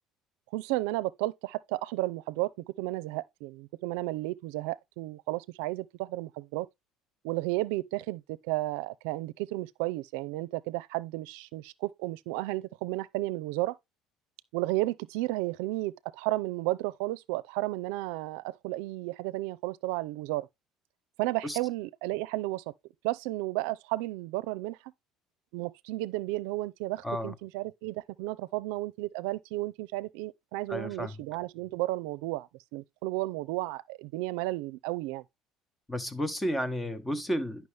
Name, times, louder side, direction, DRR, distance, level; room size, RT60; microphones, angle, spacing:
voice 1, 0.5-6.7 7.2-13.8 14.5-20.5 21.2-22.6 23.0-24.8 25.5-35.2, right 19 dB, 85° right, 0.5 m, -33 dB
voice 2, 27.0-27.3 30.7-31.2 35.9-37.7, equal, 10° left, 1.1 m, -32 dB
9.4 x 5.9 x 3.4 m
supercardioid pair, 100°, 0 cm